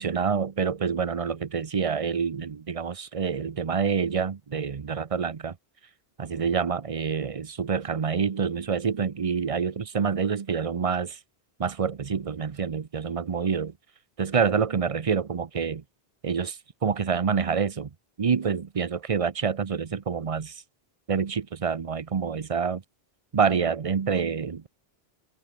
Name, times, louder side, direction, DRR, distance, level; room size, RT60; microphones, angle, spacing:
voice 1, 0.0-5.6 6.2-11.2 11.6-13.7 14.2-15.8 16.2-17.9 18.2-20.6 21.1-22.8 23.3-24.7, right 6 dB, 35° right, 0.7 m, -27 dB
omnidirectional pair, 1.0 m